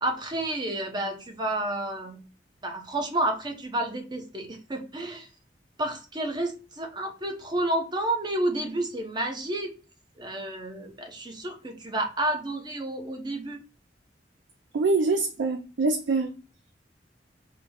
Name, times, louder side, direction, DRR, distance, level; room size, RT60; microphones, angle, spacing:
voice 1, 0.0-2.2 2.6-5.3 5.8-9.7 10.2-13.6, right 1 dB, 25° right, 0.7 m, -30 dB
voice 2, 14.7-16.3, right 3 dB, 80° right, 0.4 m, -24 dB
3.8 x 2.0 x 3.3 m
head